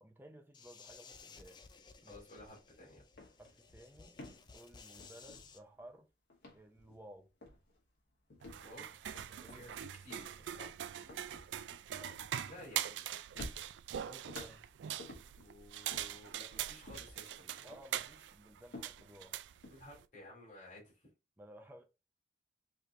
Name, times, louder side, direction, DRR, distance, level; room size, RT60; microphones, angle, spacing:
voice 1, 0.0-1.6 2.0-2.2 3.4-4.2 4.5-6.1 6.5-7.3 9.4-9.7 11.0-11.2 12.0-12.2 14.3-14.7 17.6-19.4 21.4-21.8, right 1 dB, 10° right, 0.7 m, -56 dB
sound 1, 0.5-5.6, left 5 dB, 25° left, 0.4 m, -57 dB
voice 2, 2.1-3.0 8.6-8.9 9.5-10.8 12.4-13.1 14.0-14.2 15.4-17.7 19.7-20.9, left 1 dB, 45° left, 2.7 m, -54 dB
sound 2, 2.5-2.7 3.0-6.0 6.3-7.1 7.4-7.8 8.3-13.0 13.3-15.5 15.9-17.3 17.7-19.7, left 1 dB, 75° left, 1.8 m, -53 dB
sound 3, 8.4-20.0, right 10 dB, 85° right, 0.3 m, -43 dB
5.0 x 3.2 x 2.5 m
head